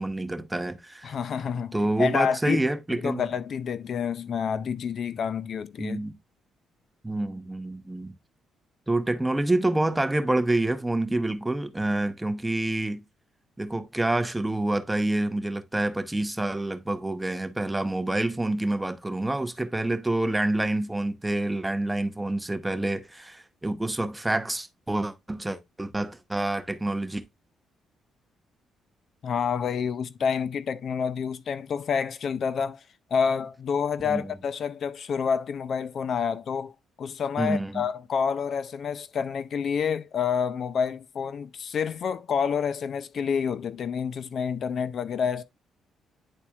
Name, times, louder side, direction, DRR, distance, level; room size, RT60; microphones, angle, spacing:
voice 1, 0.0-1.2 1.7-3.3 5.8-6.1 7.0-8.1 8.9-13.0 13.6-27.2 34.0-34.3 37.4-37.9, right 2 dB, 10° right, 0.8 m, -27 dB
voice 2, 1.0-2.6 2.9-6.0 29.2-32.8 33.1-45.4, left 6 dB, 55° left, 0.4 m, -28 dB
9.9 x 4.2 x 2.3 m
cardioid pair, 90°, 0 cm